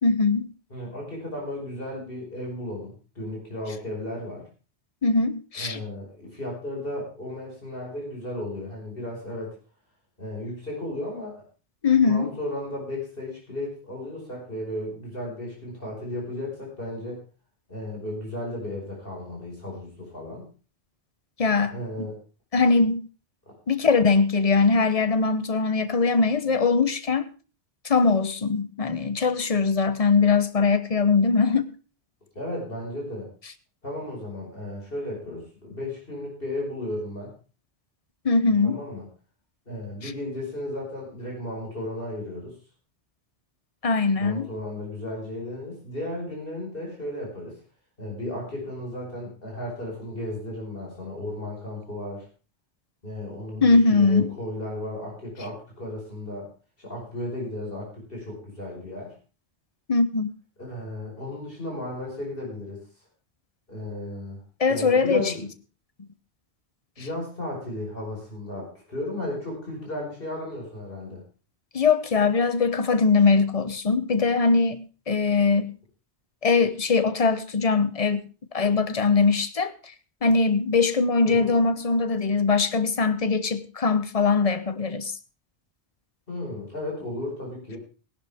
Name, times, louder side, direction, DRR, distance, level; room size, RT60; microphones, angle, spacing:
voice 1, 0.0-0.5 5.0-5.8 11.8-12.3 21.4-22.1 22.5-23.1 23.7-27.3 27.8-31.7 38.2-38.8 40.0-40.1 43.8-44.5 53.6-54.3 59.9-60.3 64.6-65.3 66.0-66.1 71.7-75.7 76.4-78.3 78.5-79.7 80.2-85.1, left 4 dB, 35° left, 0.9 m, -21 dB
voice 2, 0.7-4.4 5.6-9.6 10.2-11.4 12.0-17.2 17.7-20.4 21.7-22.2 23.5-23.6 32.4-33.3 33.8-37.3 38.6-39.0 39.7-42.6 44.2-47.5 48.0-52.3 53.0-56.5 56.8-59.2 60.6-62.8 63.7-64.4 64.7-65.4 67.0-71.2 81.2-81.5 86.3-87.8, left 1 dB, 55° left, 5.3 m, -34 dB
16.5 x 11.0 x 3.5 m
omnidirectional pair, 1.1 m